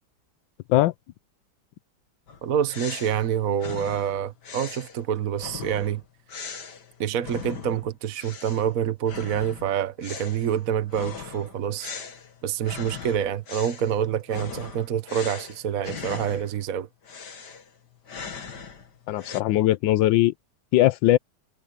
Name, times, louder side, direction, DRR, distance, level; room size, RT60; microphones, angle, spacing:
sound 1, 2.3-7.9 8.2-8.7 9.0-16.7 17.0-19.4, left 6 dB, 65° left, 2.5 m, -40 dB
voice 1, 2.4-6.0 7.0-11.9 12.4-16.9, right 9 dB, 55° right, 1.3 m, -27 dB
voice 2, 19.1-20.3 20.7-21.2, left 15 dB, 85° left, 1.3 m, -20 dB
omnidirectional pair, 2.0 m